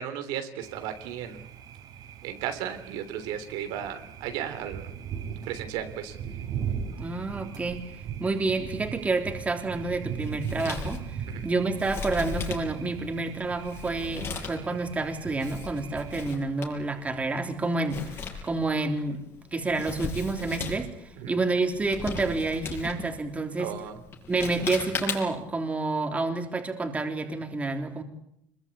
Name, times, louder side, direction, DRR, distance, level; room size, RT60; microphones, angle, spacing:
voice 1, 0.0-1.4 2.2-4.9 5.5-6.1 11.3-11.5 21.2-21.3 23.6-24.0, right 9 dB, 85° right, 7 dB, 3.3 m, -35 dB
Thunder, 0.6-16.3, right 7 dB, 60° right, 4.0 m, -39 dB
voice 2, 7.0-7.8 8.2-19.2 19.5-23.7 24.3-28.0, right 3 dB, 15° right, 4 dB, 3.5 m, -29 dB
Male speech man speaking, 10.2-25.5, left 4 dB, 35° left, 6.7 m, -38 dB
26.5 x 22.5 x 8.6 m, 0.75 s
cardioid pair, 145°, 8 cm